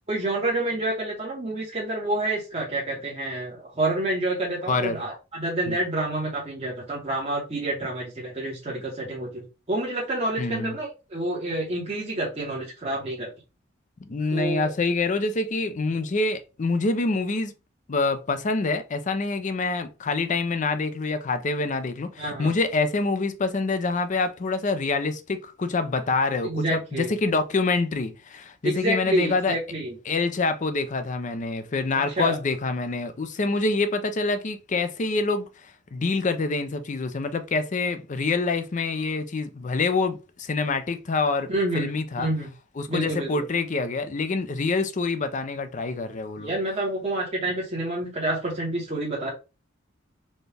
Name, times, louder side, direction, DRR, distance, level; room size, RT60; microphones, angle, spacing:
voice 1, 0.1-13.3 14.3-14.7 22.2-22.5 26.4-27.1 28.6-29.9 32.2-32.4 41.5-42.5 42.9-43.3 46.4-49.3, right 1 dB, 35° right, 1.0 m, -28 dB
voice 2, 4.7-5.0 5.7-5.8 10.4-10.8 14.1-17.5 17.9-29.6 30.1-41.5 41.7-42.3 42.8-46.5, left 3 dB, 40° left, 0.5 m, -26 dB
4.2 x 2.2 x 3.3 m
head